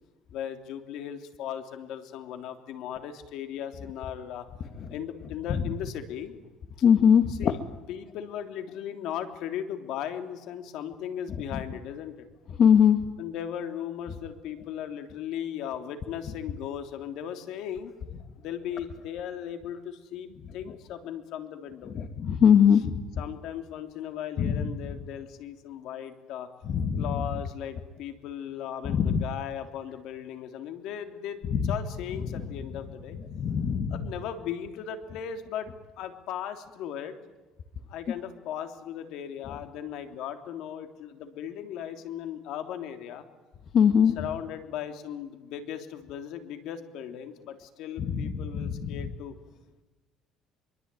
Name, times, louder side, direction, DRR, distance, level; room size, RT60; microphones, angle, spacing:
voice 1, 0.3-4.4 4.9-6.4 7.3-7.6 7.9-12.3 13.2-17.9 18.4-21.9 23.2-26.5 27.0-33.2 33.9-35.7 36.0-37.2 37.9-43.3 44.1-49.3, left 9 dB, 70° left, 7 dB, 3.3 m, -37 dB
voice 2, 6.8-7.5 11.3-11.6 12.6-13.0 21.9-23.0 24.4-24.7 26.7-27.2 28.9-29.2 31.5-31.7 32.3-32.4 33.3-34.0 43.7-44.1 48.0-49.0, left 8 dB, 45° left, 8 dB, 1.7 m, -22 dB
24.0 x 24.0 x 9.3 m, 1.2 s
cardioid pair, 135°, 0 cm